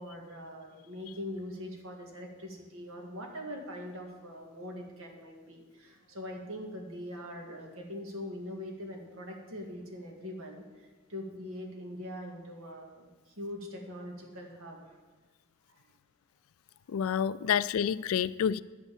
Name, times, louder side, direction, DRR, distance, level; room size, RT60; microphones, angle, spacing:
voice 1, 0.0-15.0 15.7-15.8 16.9-17.0 17.4-17.5 18.0-18.1, left 1 dB, 75° right, 2 dB, 1.9 m, -42 dB
voice 2, 16.9-18.6, left 8 dB, 75° left, 17 dB, 0.3 m, -28 dB
10.5 x 5.4 x 8.4 m, 1.3 s
head